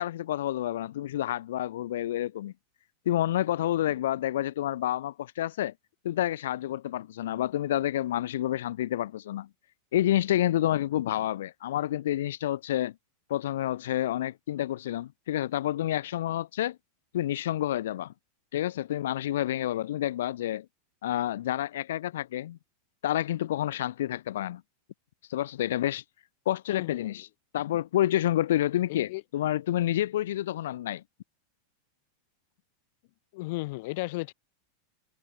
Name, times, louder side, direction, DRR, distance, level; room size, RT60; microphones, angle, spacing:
voice 1, 0.0-2.5 3.1-5.7 6.0-9.5 9.9-12.9 13.3-16.8 17.1-18.1 18.5-20.7 21.0-22.6 23.0-24.6 25.3-26.0 26.5-27.3 27.5-31.0, left 13 dB, 80° left, 0.9 m, -29 dB
voice 2, 26.7-27.1 28.9-29.2 33.3-34.3, left 23 dB, 60° left, 2.4 m, -34 dB
supercardioid pair, 130°, 0 cm